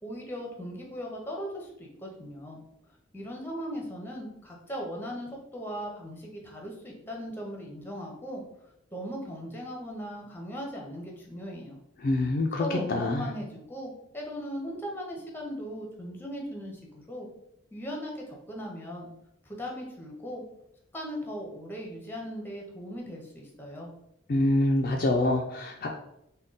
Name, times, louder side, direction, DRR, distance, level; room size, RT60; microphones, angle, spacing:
voice 1, 0.0-2.6 3.1-8.4 8.9-11.8 12.6-17.3 17.7-19.1 19.4-20.4 20.9-23.9, equal, 10° left, -1 dB, 0.6 m, -38 dB
voice 2, 12.0-13.3 24.3-25.9, left 2 dB, 45° left, 1 dB, 0.3 m, -26 dB
3.6 x 2.2 x 3.9 m, 0.79 s
head